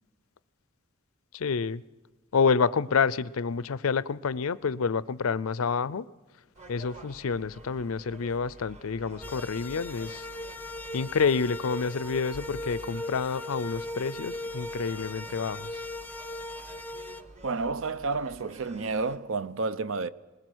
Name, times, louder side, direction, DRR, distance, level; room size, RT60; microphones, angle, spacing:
voice 1, 1.3-1.8 2.3-6.1 6.7-10.3 10.9-15.7, left 5 dB, 85° left, 0.5 m, -28 dB
Gull seagull, 6.5-19.2, right 1 dB, 30° right, 1.4 m, -51 dB
sound 1, 9.2-17.2, left 1 dB, 10° left, 0.7 m, -38 dB
voice 2, 17.4-20.1, right 3 dB, 70° right, 0.7 m, -30 dB
20.5 x 20.0 x 6.3 m
head